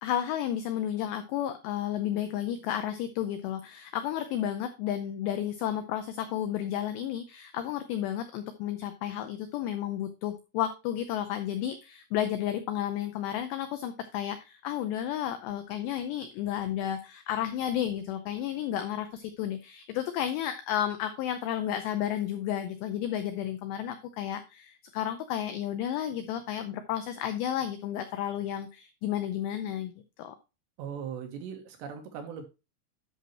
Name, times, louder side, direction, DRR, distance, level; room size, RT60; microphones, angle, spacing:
voice 1, 0.0-29.9 30.2-30.4, left 11 dB, 85° left, 8 dB, 2.4 m, -32 dB
voice 2, 30.8-32.4, right 7 dB, 75° right, 4 dB, 2.8 m, -39 dB
10.5 x 5.9 x 3.0 m, 0.28 s
omnidirectional pair, 5.9 m